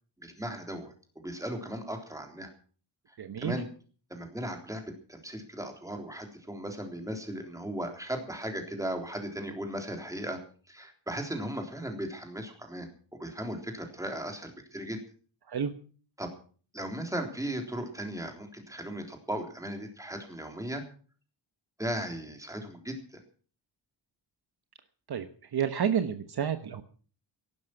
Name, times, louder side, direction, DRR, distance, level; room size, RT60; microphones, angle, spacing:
voice 1, 0.2-2.5 3.4-3.7 4.1-10.4 10.7-12.9 13.2-15.0 16.2-16.3 16.7-20.8 21.8-23.0, right 1 dB, 5° right, 3 dB, 3.6 m, -37 dB
voice 2, 3.2-3.6 15.5-15.7 25.1-26.8, right 8 dB, 55° right, 9 dB, 1.2 m, -30 dB
16.0 x 12.0 x 6.1 m, 0.42 s
wide cardioid pair, 135°, 47 cm